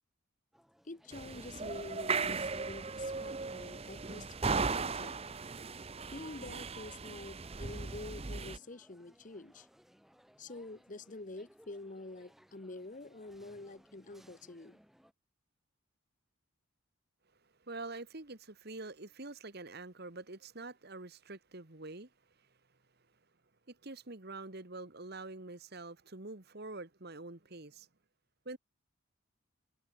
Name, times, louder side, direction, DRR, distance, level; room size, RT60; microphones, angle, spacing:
sound 1, 0.5-15.1, equal, ahead, 2.3 m, -64 dB
voice 1, 0.8-5.2 6.1-9.7 10.4-14.8, left 2 dB, 35° left, 0.9 m, -47 dB
sound 2, 1.1-8.6, right 4 dB, 25° right, 0.7 m, -37 dB
voice 2, 17.7-22.1 23.7-27.9 28.4-28.6, right 2 dB, 50° right, 1.6 m, -46 dB
head